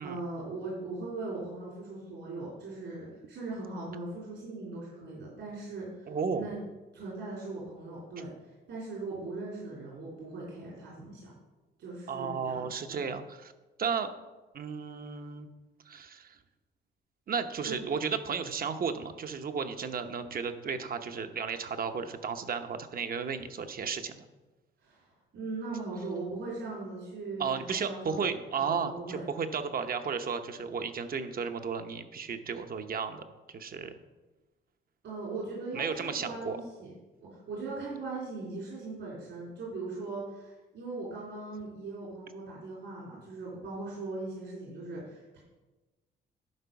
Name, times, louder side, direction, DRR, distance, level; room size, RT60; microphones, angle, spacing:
voice 1, 0.0-6.6 6.9-11.3 11.8-13.0 17.6-17.8 24.8-29.2 35.0-36.9 37.2-45.4, right 3 dB, 75° right, -6 dB, 3.6 m, -40 dB
voice 2, 6.1-6.5 12.1-13.5 13.8-14.1 14.5-15.5 15.8-16.4 17.3-24.2 27.4-33.9 35.7-36.6, right 6 dB, 45° right, 8 dB, 0.9 m, -34 dB
11.0 x 4.6 x 5.9 m, 1.2 s
cardioid pair, 90°, 20 cm